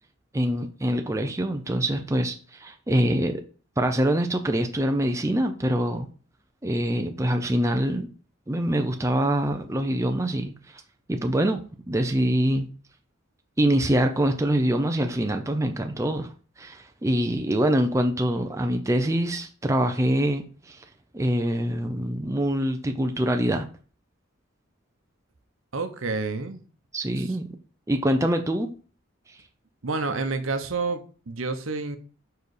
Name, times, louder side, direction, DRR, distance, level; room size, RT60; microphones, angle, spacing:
voice 1, 0.3-3.4 3.8-6.1 6.6-8.1 8.5-10.8 11.1-11.6 11.9-12.7 13.6-16.3 16.6-20.8 21.1-23.7 26.9-27.5 27.9-28.7, right 1 dB, 15° right, 0.4 m, -24 dB
voice 2, 25.7-26.6 27.2-27.4 29.8-32.0, right 3 dB, 80° right, 0.9 m, -29 dB
5.2 x 4.7 x 4.8 m
head